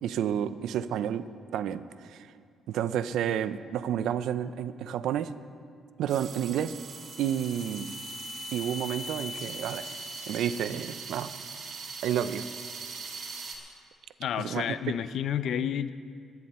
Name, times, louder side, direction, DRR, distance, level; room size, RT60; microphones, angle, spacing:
voice 1, 0.0-1.3 1.5-2.3 2.7-5.3 6.0-6.8 7.2-7.9 8.5-9.9 10.3-11.3 12.0-12.5 14.4-14.7, right 9 dB, 80° right, 13 dB, 0.5 m, -30 dB
sound 1, 6.1-13.6, right 2 dB, 55° right, 2.6 m, -40 dB
voice 2, 14.2-15.9, left 9 dB, 70° left, 13 dB, 0.5 m, -30 dB
24.5 x 9.5 x 4.3 m, 2.2 s
cardioid pair, 90°, 0 cm